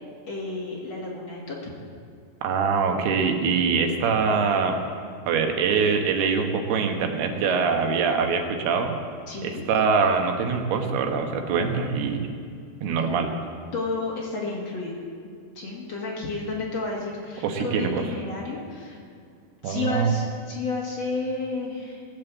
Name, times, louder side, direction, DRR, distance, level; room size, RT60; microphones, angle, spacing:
voice 1, 0.3-1.6 9.3-9.6 13.7-15.0 15.5-19.0 19.6-22.0, left 3 dB, 45° left, -3 dB, 2.8 m, -31 dB
voice 2, 2.4-4.8 5.3-8.9 9.4-12.3 12.8-13.3 17.4-17.9 19.6-20.1, right 5 dB, 75° right, 4 dB, 3.2 m, -23 dB
18.0 x 7.4 x 8.2 m, 2.3 s
omnidirectional pair, 4.9 m